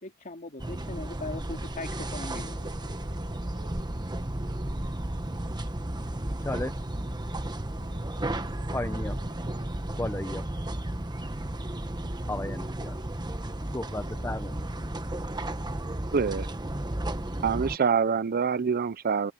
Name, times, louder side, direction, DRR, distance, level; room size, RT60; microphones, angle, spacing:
voice 1, 0.0-2.6, left 2 dB, 40° left, 2.8 m, -39 dB
sound 1, 0.6-17.8, right 1 dB, 20° right, 1.2 m, -33 dB
sound 2, 2.6-3.7 7.7-9.7 13.7-14.6, left 3 dB, 70° left, 7.8 m, -56 dB
voice 2, 6.4-6.8 8.7-9.2 10.0-10.5 12.3-15.5, left 1 dB, 10° left, 0.7 m, -36 dB
voice 3, 16.1-16.5 17.4-19.3, right 6 dB, 45° right, 0.5 m, -25 dB
open air
head